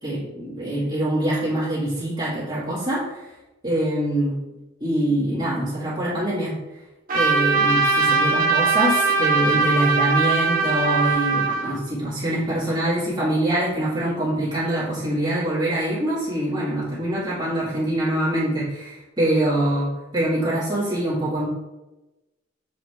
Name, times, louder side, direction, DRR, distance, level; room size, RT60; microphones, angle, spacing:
voice 1, 0.0-3.3 3.6-4.4 4.8-6.5 7.1-21.5, right 1 dB, 25° right, -10 dB, 2.1 m, -24 dB
Trumpet, 7.1-11.8, right 4 dB, 45° right, 1.3 m, -20 dB
7.4 x 4.9 x 3.5 m, 1.0 s
head